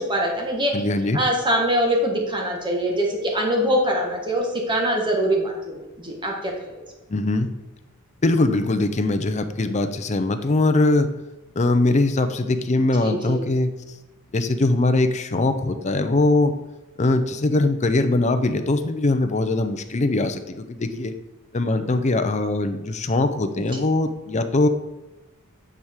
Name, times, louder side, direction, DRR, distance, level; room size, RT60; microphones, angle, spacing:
voice 1, 0.0-0.7 1.1-6.8 13.0-13.4 23.7-23.8, equal, 20° right, 0 dB, 1.4 m, -23 dB
voice 2, 0.7-1.2 7.1-7.5 8.2-11.1 11.6-13.7 14.3-16.5 17.0-21.1 21.5-24.7, left 2 dB, 30° left, 8 dB, 0.5 m, -21 dB
9.1 x 4.8 x 3.6 m, 1.1 s
head